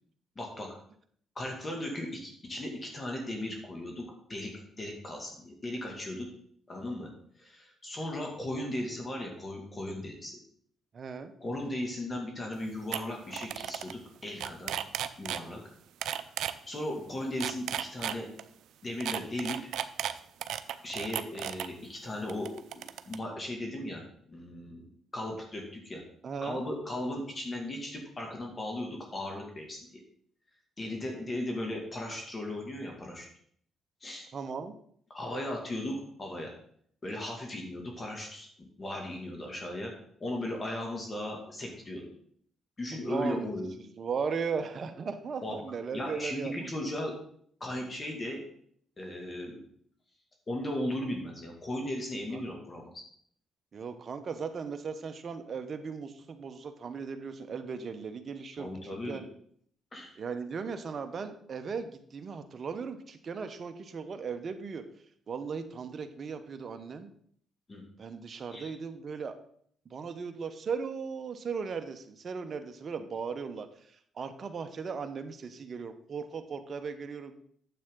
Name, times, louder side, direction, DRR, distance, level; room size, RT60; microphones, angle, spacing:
voice 1, 0.4-0.7 1.4-4.0 4.3-6.3 6.7-7.1 7.4-10.3 11.4-14.8 15.2-15.6 16.2-16.3 16.7-18.3 18.8-19.6 20.8-24.0 24.3-24.8 25.1-26.0 26.4-29.9 30.8-33.3 34.0-34.3 35.1-36.5 37.0-39.9 40.2-42.1 42.8-43.7 45.4-45.6 45.9-47.1 47.6-48.4 49.0-49.6 50.5-53.0 58.6-59.2 59.9-60.1 67.7-67.8 68.5-68.7, left 1 dB, 30° left, 1 dB, 2.2 m, -37 dB
voice 2, 10.9-11.3 26.2-26.6 34.3-34.7 42.9-46.9 52.3-52.4 53.7-58.7 59.1-59.2 60.2-64.8 65.3-67.1 68.0-69.4 69.9-77.4, right 5 dB, 45° right, 7 dB, 0.9 m, -37 dB
sound 1, 12.5-12.6 12.9-13.0 13.3-13.9 14.2-15.4 16.0-16.5 17.2-18.4 19.0-21.7 22.3-23.2, right 11 dB, 80° right, 0.5 m, -34 dB
9.3 x 7.5 x 3.8 m, 0.63 s
cardioid pair, 90°, 0 cm